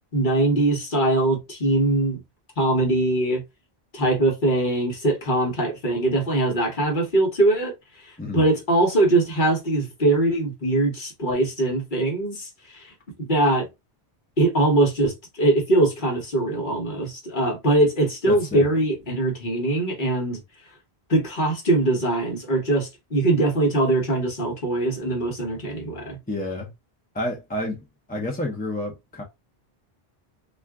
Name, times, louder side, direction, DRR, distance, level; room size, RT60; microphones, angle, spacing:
voice 1, 0.1-2.2 2.6-3.4 3.9-7.7 8.3-12.9 13.3-13.7 14.4-20.4 21.1-26.2, right 2 dB, 50° left, 1.1 m, -22 dB
voice 2, 18.3-18.7 26.3-26.7 27.1-29.2, left 1 dB, 10° left, 0.5 m, -30 dB
2.4 x 2.4 x 3.5 m
omnidirectional pair, 1.1 m